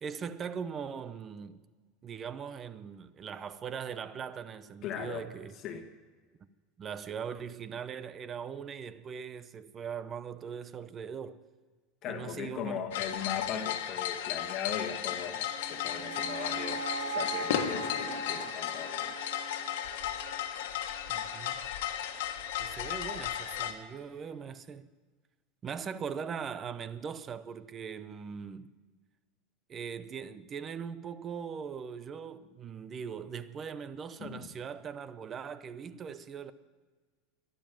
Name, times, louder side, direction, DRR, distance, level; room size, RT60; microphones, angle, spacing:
voice 1, 0.0-1.6 2.0-5.6 6.8-11.4 12.1-12.8 21.1-21.7 22.6-24.9 25.6-28.7 29.7-36.5, right 7 dB, 25° right, 0.7 m, -40 dB
voice 2, 4.8-5.2 5.6-5.9 12.0-19.2 34.2-34.5, left 8 dB, 40° left, 1.5 m, -38 dB
sound 1, 12.9-23.7, left 10 dB, 80° left, 1.4 m, -35 dB
sound 2, 15.5-20.7, right 3 dB, 70° right, 3.7 m, -40 dB
12.5 x 11.5 x 9.0 m
supercardioid pair, 145°, 0 cm